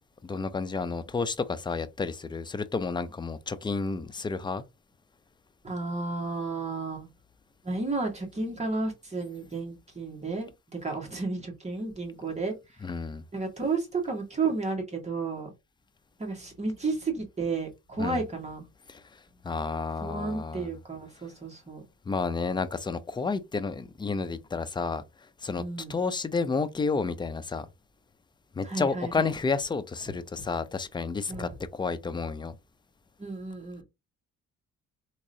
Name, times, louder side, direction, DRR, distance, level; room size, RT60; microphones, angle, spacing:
voice 1, 0.2-4.6 12.8-13.2 18.0-18.2 18.9-19.2 19.4-20.7 22.1-25.0 25.4-25.6 25.9-27.7 28.6-32.6, left 4 dB, 15° left, 0.5 m, -31 dB
voice 2, 5.6-7.1 7.6-12.9 13.3-15.5 16.2-18.6 20.0-21.8 25.6-26.0 28.6-29.3 31.3-31.5 33.2-33.8, right 3 dB, 20° right, 1.9 m, -32 dB
3.6 x 2.9 x 2.7 m
cardioid pair, 90°, 30 cm